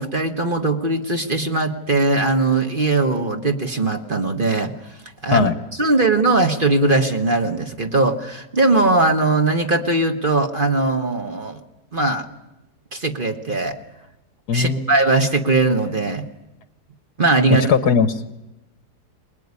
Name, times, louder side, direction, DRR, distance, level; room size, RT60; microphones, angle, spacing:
voice 1, 0.0-4.7 5.2-5.5 5.8-11.6 11.9-12.2 12.9-13.8 14.5-16.2 17.2-17.7, right 2 dB, 30° right, 5 dB, 1.6 m, -20 dB
voice 2, 14.5-14.9 17.5-18.2, left 6 dB, 70° left, 12 dB, 1.8 m, -18 dB
24.0 x 20.5 x 9.8 m, 0.94 s
omnidirectional pair, 1.8 m